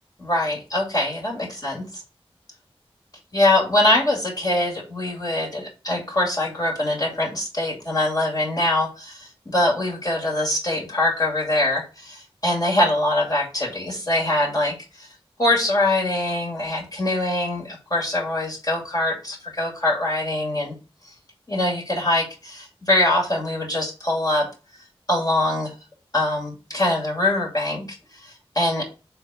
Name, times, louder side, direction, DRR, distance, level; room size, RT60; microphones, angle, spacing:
voice 1, 0.2-1.8 3.3-15.1 15.4-20.7 21.0-21.1 21.5-24.5 25.1-25.7 26.1-28.8, left 1 dB, 40° left, -1 dB, 2.4 m, -23 dB
4.5 x 3.8 x 5.6 m, 0.33 s
wide cardioid pair, 50°, 10 cm